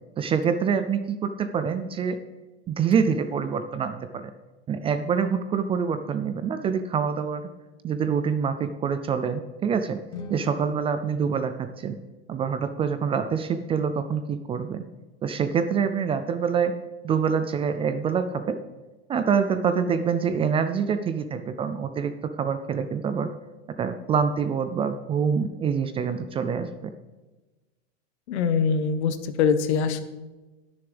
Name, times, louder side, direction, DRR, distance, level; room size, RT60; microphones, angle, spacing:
voice 1, 0.2-2.2 2.7-4.3 4.7-7.5 7.8-10.0 10.3-12.0 12.3-14.8 15.2-16.7 17.0-18.6 19.1-22.1 22.4-23.3 23.8-26.9, right 6 dB, 15° right, 9 dB, 0.3 m, -26 dB
sound 1, 10.1-12.3, left 4 dB, 50° left, 1.5 m, -43 dB
voice 2, 28.3-30.0, left 6 dB, 75° left, 11 dB, 1.1 m, -23 dB
18.0 x 6.9 x 3.4 m, 1.2 s
supercardioid pair, 130°, 34 cm